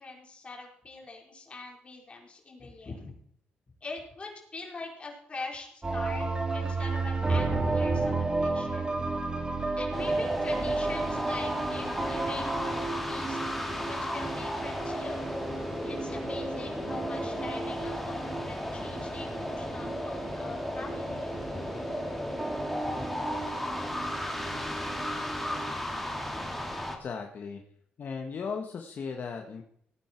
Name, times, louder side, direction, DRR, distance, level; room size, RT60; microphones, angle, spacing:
voice 1, 0.0-3.1 3.8-6.3 6.5-8.8 9.8-13.4 13.8-15.2 15.8-21.9 22.9-23.1, left 3 dB, 30° left, 0 dB, 4.5 m, -43 dB
sound 1, 5.8-25.7, right 3 dB, 20° right, 2.3 m, -33 dB
sound 2, 9.9-27.0, left 1 dB, 5° left, 2.8 m, -35 dB
voice 2, 27.0-27.6 28.0-29.6, left 5 dB, 55° left, 3 dB, 1.5 m, -36 dB
17.5 x 9.4 x 4.6 m, 0.68 s
cardioid pair, 95°, 4 cm